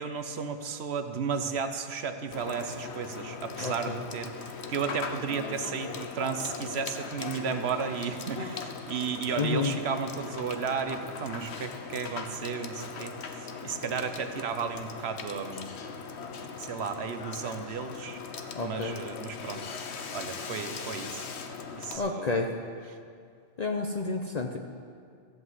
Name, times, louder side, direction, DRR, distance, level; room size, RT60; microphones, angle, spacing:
voice 1, 0.0-15.7 16.6-18.2 18.6-19.6 20.1-21.3 21.7-22.3, right 6 dB, 75° right, 8 dB, 1.1 m, -34 dB
Water / Water tap faucet / Sink (filling or washing), 2.3-22.0, left 5 dB, 90° left, 1.2 m, -40 dB
voice 2, 3.6-4.0 9.3-9.8 18.5-19.0 22.0-22.5 23.6-24.6, left 3 dB, 45° left, 3 dB, 0.8 m, -30 dB
14.5 x 7.8 x 7.9 m, 2.2 s
omnidirectional pair, 1.1 m